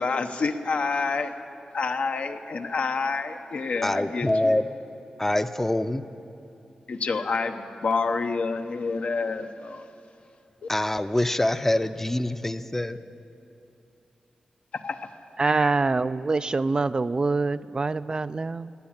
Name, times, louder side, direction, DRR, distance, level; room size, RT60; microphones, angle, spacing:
voice 1, 0.0-1.3 1.7-4.6 6.9-9.9 10.6-10.7 14.8-15.1 15.4-15.7, left 4 dB, 65° left, 6 dB, 0.9 m, -28 dB
voice 2, 3.8-4.7 5.2-6.0 10.7-13.0, left 1 dB, 15° left, 11 dB, 0.6 m, -25 dB
voice 3, 15.4-18.7, right 3 dB, 35° right, 14 dB, 0.3 m, -25 dB
16.0 x 9.5 x 8.9 m, 2.7 s
cardioid pair, 70°, 2 cm